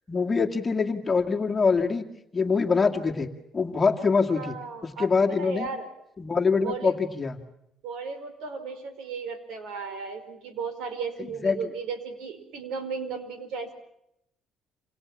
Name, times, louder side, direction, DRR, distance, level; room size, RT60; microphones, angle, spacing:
voice 1, 0.1-2.1 2.3-3.3 3.5-4.5 4.8-5.7 6.2-7.4 11.4-11.6, left 5 dB, 20° left, 3 dB, 2.2 m, -24 dB
voice 2, 4.3-5.9 6.6-7.0 7.8-13.7, right 5 dB, 75° right, 11 dB, 4.8 m, -35 dB
27.5 x 27.5 x 7.4 m, 0.79 s
cardioid pair, 125°, 0 cm